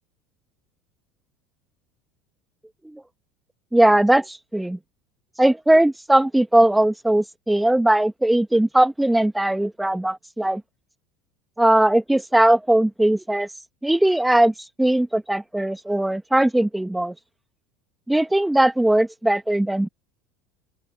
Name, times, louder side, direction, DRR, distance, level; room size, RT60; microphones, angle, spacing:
voice 1, 3.7-4.8 5.4-10.6 11.6-13.5 13.8-17.1 18.1-19.9, right 1 dB, 5° right, 1.8 m, -19 dB
open air
hypercardioid pair, 75°, 0 cm